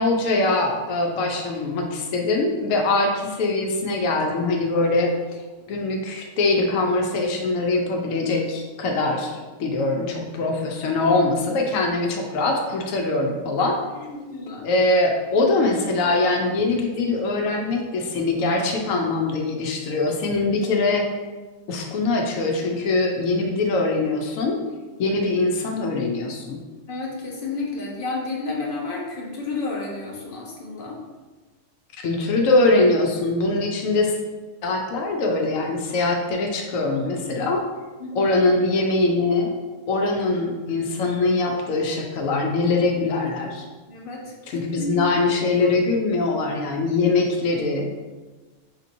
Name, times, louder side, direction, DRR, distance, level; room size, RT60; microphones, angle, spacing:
voice 1, 0.0-5.1 5.7-13.8 14.6-21.1 21.7-24.6 25.0-26.6 32.0-34.1 34.6-37.7 38.1-39.5 39.9-43.7 44.5-47.9, left 2 dB, 90° left, 1 dB, 1.0 m, -22 dB
voice 2, 14.1-14.7 26.9-31.0 38.0-38.4 43.9-45.3 45.6-45.7, left 3 dB, 50° left, -2 dB, 0.9 m, -31 dB
5.0 x 2.8 x 2.6 m, 1.3 s
omnidirectional pair, 1.3 m